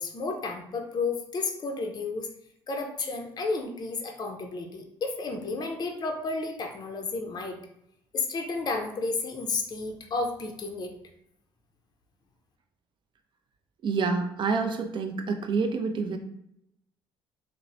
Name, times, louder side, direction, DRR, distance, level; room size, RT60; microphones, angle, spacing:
voice 1, 0.0-2.3 2.7-7.6 8.1-10.9, left 3 dB, 35° left, 3 dB, 0.5 m, -32 dB
voice 2, 13.8-16.2, right 4 dB, 40° right, 6 dB, 0.4 m, -27 dB
3.0 x 2.0 x 2.6 m, 0.77 s
hypercardioid pair, 60°, 12 cm